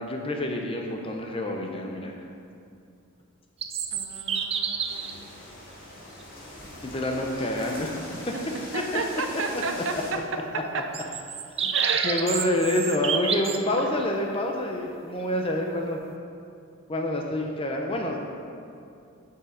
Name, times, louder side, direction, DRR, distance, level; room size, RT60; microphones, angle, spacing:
voice 1, 0.0-2.1 6.8-8.0 8.7-9.0 9.3-9.6 11.6-11.7 12.0-16.0 16.9-18.2, left 1 dB, 25° left, 2 dB, 0.6 m, -27 dB
sound 1, 3.6-5.2 6.2-6.3 10.9-13.6, right 7 dB, 30° right, 0.4 m, -29 dB
voice 2, 3.9-5.2 8.7-9.9 11.7-12.2, right 4 dB, 60° right, 5 dB, 0.7 m, -32 dB
sound 2, 4.8-10.1, left 1 dB, 40° left, 2.1 m, -41 dB
8.8 x 5.7 x 5.1 m, 2.5 s
head